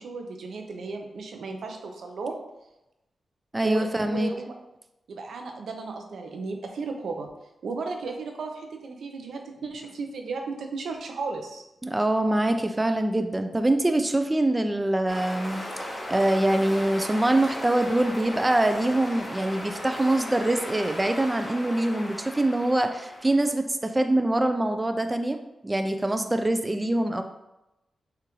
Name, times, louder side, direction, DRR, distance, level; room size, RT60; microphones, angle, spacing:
voice 1, 0.0-2.4 3.6-4.5 5.1-7.3 7.6-11.6, right 4 dB, 85° right, 3 dB, 0.6 m, -34 dB
voice 2, 3.5-4.3 11.8-25.4 25.6-27.2, right 1 dB, 20° right, 7 dB, 0.3 m, -24 dB
sound 1, 15.1-23.5, left 1 dB, 20° left, 1.3 m, -36 dB
6.6 x 2.5 x 3.0 m, 0.92 s
cardioid pair, 90°, 0 cm